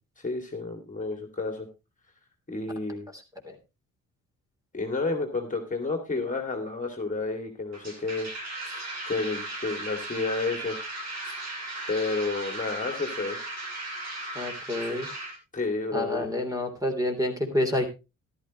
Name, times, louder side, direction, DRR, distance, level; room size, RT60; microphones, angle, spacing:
voice 1, 0.2-1.7 2.5-3.1 4.7-8.4 9.0-10.8 11.2-11.3 11.9-13.5 14.8-15.0 15.5-16.3, left 3 dB, 25° left, 5 dB, 2.5 m, -31 dB
sound 1, 7.7-15.4, right 2 dB, 60° right, 6.2 m, -37 dB
voice 2, 14.4-15.1 15.9-17.9, left 1 dB, 10° right, 5 dB, 3.4 m, -28 dB
13.5 x 12.0 x 3.1 m, 0.26 s
cardioid pair, 90°, 30 cm